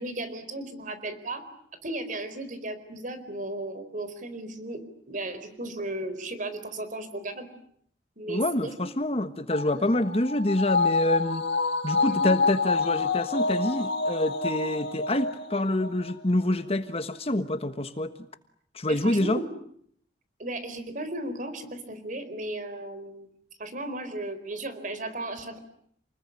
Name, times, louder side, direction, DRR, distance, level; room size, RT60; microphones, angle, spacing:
voice 1, 0.0-1.4 1.8-7.5 8.2-8.7 9.2-9.3 9.7-10.0 12.0-12.3 18.9-19.5 20.4-23.3 23.6-25.6, right 2 dB, 45° right, 11 dB, 4.3 m, -35 dB
voice 2, 8.3-11.4 11.8-18.1 18.7-19.4, left 1 dB, 35° left, 10 dB, 1.3 m, -27 dB
sound 1, 9.5-16.2 16.5-16.6, left 4 dB, 70° left, 2.2 m, -27 dB
29.0 x 20.5 x 9.6 m, 0.66 s
head